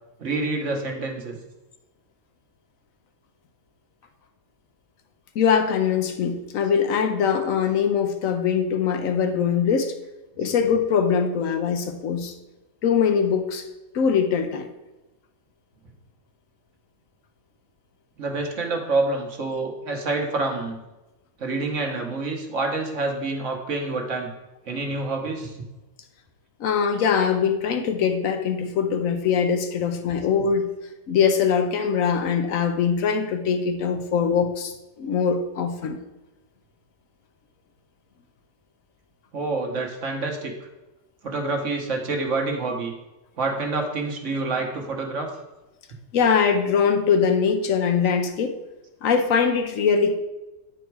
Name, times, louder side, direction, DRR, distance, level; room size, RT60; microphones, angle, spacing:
voice 1, 0.2-1.4 18.2-20.8 21.4-24.3 24.7-25.6 29.8-29.9 30.2-30.3 39.3-40.5 41.2-42.9 43.4-45.3, right 3 dB, 60° right, 2 dB, 1.4 m, -27 dB
voice 2, 5.3-9.9 10.4-12.3 12.8-13.6 13.9-14.7 26.6-30.7 31.1-36.0 46.1-48.5 49.0-50.2, left 6 dB, 75° left, 6 dB, 1.1 m, -22 dB
9.2 x 4.4 x 4.6 m, 1.0 s
omnidirectional pair, 1.4 m